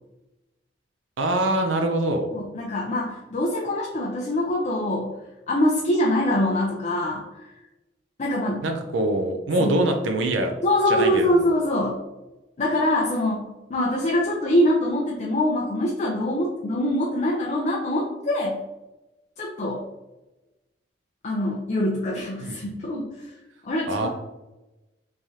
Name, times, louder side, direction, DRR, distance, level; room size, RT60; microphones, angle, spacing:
voice 1, 1.2-2.3 8.6-10.5 10.9-11.6 22.4-22.7 23.9-24.1, right 1 dB, 70° right, 4 dB, 0.5 m, -24 dB
voice 2, 2.3-5.1 5.5-7.2 8.2-8.6 9.6-9.8 10.6-12.0 12.6-13.4 13.7-18.6 19.4-19.8 21.2-23.1 23.6-24.1, left 1 dB, 40° left, -3 dB, 0.5 m, -24 dB
3.6 x 3.2 x 2.7 m, 1.0 s
head